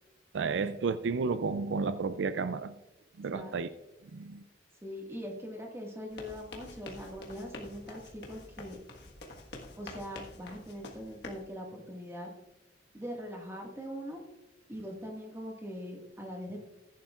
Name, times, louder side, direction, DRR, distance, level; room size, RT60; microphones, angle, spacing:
voice 1, 0.3-2.7 3.2-3.7 4.1-4.4, right 4 dB, 80° right, 13 dB, 0.4 m, -32 dB
voice 2, 4.8-8.8 9.8-12.3 12.9-14.2 14.7-16.6, equal, 15° right, 0 dB, 1.7 m, -42 dB
sound 1, 6.1-11.5, left 2 dB, 60° left, 1.5 m, -47 dB
15.0 x 10.5 x 2.4 m, 0.97 s
head